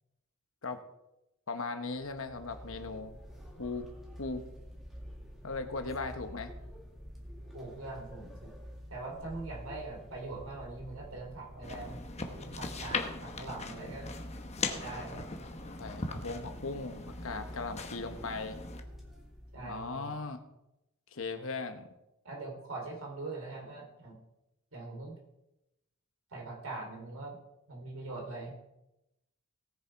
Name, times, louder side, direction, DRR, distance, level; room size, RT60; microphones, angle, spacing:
voice 1, 1.5-3.1 3.6-3.9 4.2-4.4 5.4-6.5 15.6-18.6 19.6-20.4 21.1-21.9, left 3 dB, 70° left, 8 dB, 1.1 m, -38 dB
sound 1, 1.9-20.2, equal, ahead, 2.0 m, -48 dB
voice 2, 7.5-8.5 8.9-14.1 14.6-15.3 19.5-20.2 22.3-24.2 24.7-25.2 26.3-27.4 27.7-28.6, right 2 dB, 75° right, 1 dB, 3.3 m, -42 dB
sound 2, 11.6-18.8, left 3 dB, 30° left, 1.0 m, -40 dB
18.0 x 6.8 x 4.6 m, 0.92 s
head